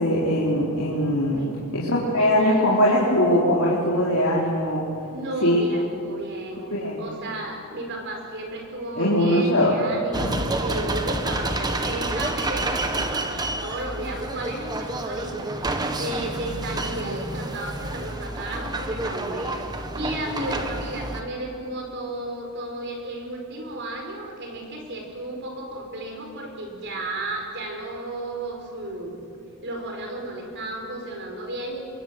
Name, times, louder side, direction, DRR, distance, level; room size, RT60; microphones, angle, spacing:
voice 1, 0.0-1.4 1.7-4.8 5.4-5.6 6.6-7.0 9.0-9.7 10.2-10.4, left 1 dB, 65° left, -6 dB, 4.1 m, -21 dB
voice 2, 2.2-2.9 5.1-6.6 7.0-29.2 29.6-31.8, right 1 dB, 55° right, 2 dB, 4.9 m, -33 dB
sound 1, 10.1-21.2, right 2 dB, 20° right, 1.5 m, -29 dB
28.0 x 22.0 x 7.9 m, 2.5 s
head